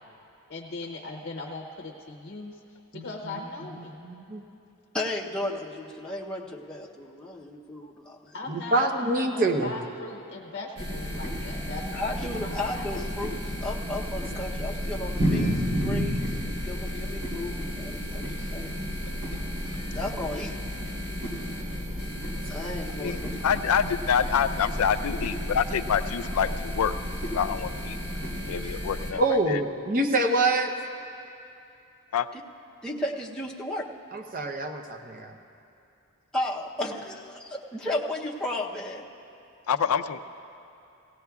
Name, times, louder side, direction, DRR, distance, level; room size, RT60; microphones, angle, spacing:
voice 1, 0.5-2.6 2.9-3.9 8.3-13.1, left 2 dB, 50° left, 1 dB, 0.7 m, -39 dB
voice 2, 2.9-3.4 3.8-4.4 8.5-9.8 29.2-30.8 34.1-35.3, right 2 dB, 40° right, 4 dB, 0.7 m, -26 dB
voice 3, 4.9-8.3 11.9-18.8 19.9-20.6 22.5-23.6 32.3-32.4 32.8-33.9 36.3-39.1, left 1 dB, 5° left, -5 dB, 0.7 m, -34 dB
sound 1, 10.8-29.1, equal, 85° right, 3.2 m, -32 dB
voice 4, 23.0-26.9 27.3-28.0 28.5-29.2 29.5-29.6 32.1-32.3 39.7-40.2, left 7 dB, 85° left, 12 dB, 0.4 m, -26 dB
17.5 x 16.5 x 2.3 m, 2.7 s
head